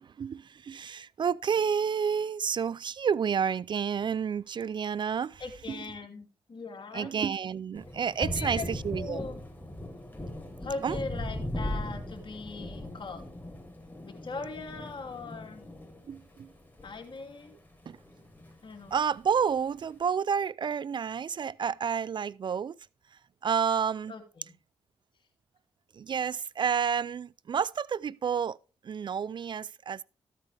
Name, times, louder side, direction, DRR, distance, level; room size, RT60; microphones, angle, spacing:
voice 1, 0.0-5.4 6.9-9.2 10.8-11.0 16.1-16.5 17.9-18.0 18.9-22.7 23.4-24.1 26.0-28.6 28.8-30.0, right 7 dB, 50° right, 0.4 m, -30 dB
voice 2, 5.4-7.1 8.2-8.6 8.9-9.4 10.6-13.2 14.0-15.6 16.8-17.5 18.6-18.9 24.1-24.5, left 4 dB, 55° left, 2.7 m, -40 dB
Thunder, 7.7-17.5 17.8-19.0, left 1 dB, 20° left, 3.9 m, -39 dB
14.0 x 8.3 x 3.4 m
supercardioid pair, 50°, 10 cm